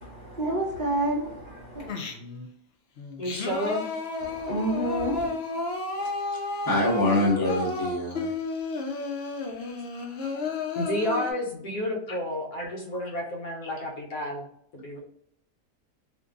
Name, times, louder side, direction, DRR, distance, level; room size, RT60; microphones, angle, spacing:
voice 1, 0.0-1.9 4.2-5.3, right 1 dB, 40° right, -7 dB, 0.7 m, -29 dB
Singing, 1.9-2.5 3.0-11.3, left 3 dB, 90° left, 0.5 m, -32 dB
voice 2, 3.2-3.9 10.7-14.5 14.7-15.0, left 1 dB, 65° left, 1 dB, 1.2 m, -31 dB
voice 3, 6.6-8.3, left 1 dB, 15° left, -5 dB, 0.8 m, -24 dB
2.8 x 2.6 x 3.5 m, 0.71 s
omnidirectional pair, 1.8 m